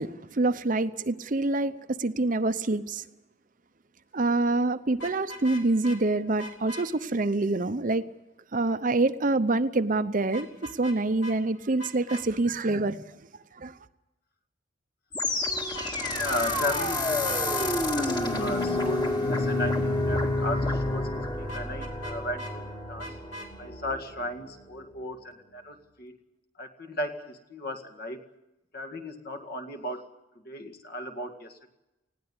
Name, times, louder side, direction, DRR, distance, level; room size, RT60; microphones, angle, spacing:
voice 1, 0.0-1.7 2.0-3.0 4.1-8.0 8.5-10.5 10.8-13.0 13.6-13.7, right 2 dB, 40° right, 0.7 m, -26 dB
Vehicle horn car horn honking, 4.9-6.0 6.4-6.9 10.3-11.0 11.2-11.4 11.8-12.2 15.7-16.4 16.7-16.9 17.2-17.7 21.5-22.5 23.0-23.5, equal, 80° left, 3.7 m, -41 dB
sound 1, 15.1-24.3, left 2 dB, 20° left, 1.9 m, -29 dB
voice 2, 16.1-23.2 23.6-26.2 26.6-28.2 28.7-30.1 30.4-31.7, left 1 dB, 50° left, 2.1 m, -36 dB
19.5 x 16.5 x 9.7 m
head